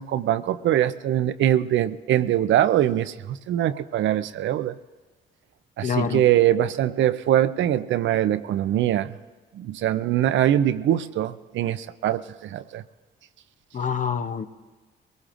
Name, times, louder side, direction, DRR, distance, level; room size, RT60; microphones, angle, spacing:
voice 1, 0.0-4.7 5.8-9.1 9.5-12.8, right 11 dB, 70° right, 13 dB, 0.5 m, -23 dB
voice 2, 5.8-6.2 13.7-14.4, left 7 dB, 40° left, 10 dB, 0.7 m, -26 dB
22.5 x 19.0 x 2.5 m, 1.3 s
cardioid pair, 90°, 20 cm